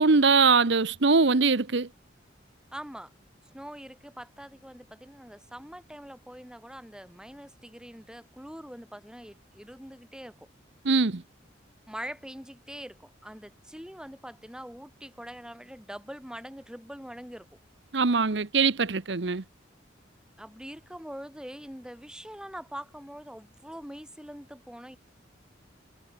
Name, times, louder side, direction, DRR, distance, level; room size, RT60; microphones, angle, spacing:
voice 1, 0.0-1.9 10.8-11.2 17.9-19.4, right 4 dB, 65° right, 1.0 m, -22 dB
voice 2, 2.7-3.1 3.4-10.5 11.9-17.5 20.4-25.0, equal, 5° right, 6.7 m, -43 dB
head